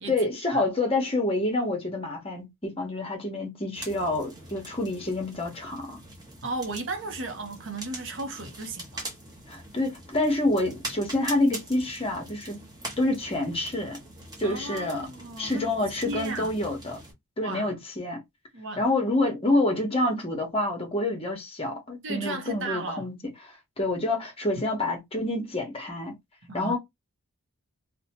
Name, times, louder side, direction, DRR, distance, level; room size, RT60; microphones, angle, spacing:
voice 1, 0.1-6.0 9.5-12.6 13.0-14.0 14.4-15.1 15.4-17.0 17.4-18.2 18.8-23.1 23.8-26.1 26.5-26.8, left 2 dB, 25° left, 0.8 m, -27 dB
sound 1, 3.7-17.1, right 1 dB, 15° right, 0.9 m, -43 dB
voice 2, 6.4-9.1 14.4-15.7 16.1-16.5 17.4-17.8 18.5-18.8 22.0-23.1 26.5-26.8, right 2 dB, 55° right, 0.7 m, -35 dB
2.7 x 2.1 x 2.9 m
head